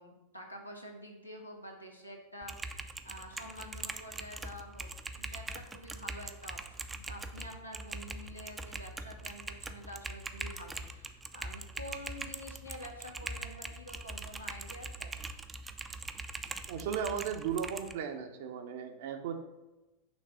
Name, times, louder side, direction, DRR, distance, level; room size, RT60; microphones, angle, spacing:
voice 1, 0.0-15.1, equal, 90° left, 0 dB, 1.0 m, -48 dB
Typing, 2.4-17.9, right 3 dB, 15° right, 0.4 m, -42 dB
voice 2, 16.7-19.4, right 7 dB, 55° right, 6 dB, 0.7 m, -36 dB
6.0 x 3.3 x 5.7 m, 1.1 s
figure-of-eight pair, 90°, 0 cm